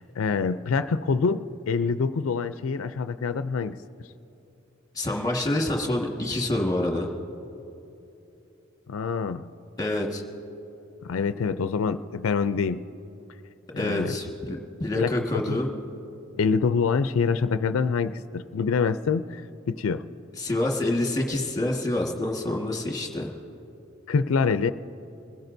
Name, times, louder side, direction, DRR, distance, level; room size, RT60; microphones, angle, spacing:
voice 1, 0.0-3.8 8.9-9.4 11.0-12.8 13.7-14.2 14.9-15.6 16.4-19.4 19.7-20.0 24.1-24.7, left 5 dB, 80° left, 12 dB, 0.4 m, -26 dB
voice 2, 4.9-7.1 9.8-10.2 13.8-15.7 20.4-23.3, left 1 dB, 20° left, 0 dB, 1.6 m, -27 dB
25.5 x 16.5 x 2.7 m, 2.9 s
head